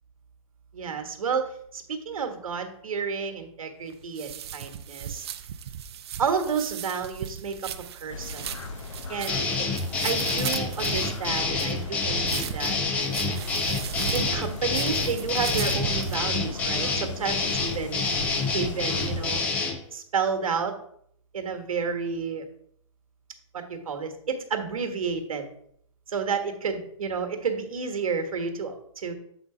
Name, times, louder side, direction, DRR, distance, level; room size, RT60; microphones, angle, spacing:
voice 1, 0.7-5.3 6.2-7.7 8.0-8.5 9.1-9.7 10.0-12.8 14.1-18.1 18.5-19.4 19.9-20.7 21.3-22.4 23.5-25.5 26.1-29.1, right 5 dB, 85° right, 5 dB, 1.3 m, -31 dB
sound 1, 3.9-16.2, right 9 dB, 50° right, 0.5 m, -37 dB
sound 2, 8.1-19.4, left 4 dB, 65° left, 0.8 m, -38 dB
sound 3, 9.3-19.8, left 3 dB, 10° left, 0.3 m, -27 dB
7.4 x 3.9 x 4.8 m, 0.69 s
hypercardioid pair, 160°, 17 cm